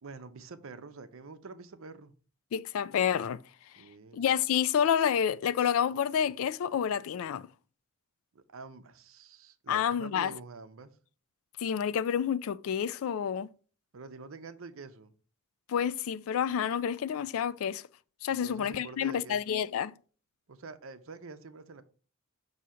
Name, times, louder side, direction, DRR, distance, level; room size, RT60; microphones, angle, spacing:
voice 1, 0.0-2.2 3.8-4.3 8.3-11.0 13.9-15.1 18.3-19.5 20.5-21.8, right 4 dB, 65° right, 0.6 m, -47 dB
voice 2, 2.5-3.4 4.1-7.5 9.7-10.3 11.6-13.5 15.7-17.8 18.2-20.0, left 8 dB, 65° left, 0.3 m, -29 dB
6.2 x 2.8 x 5.5 m
head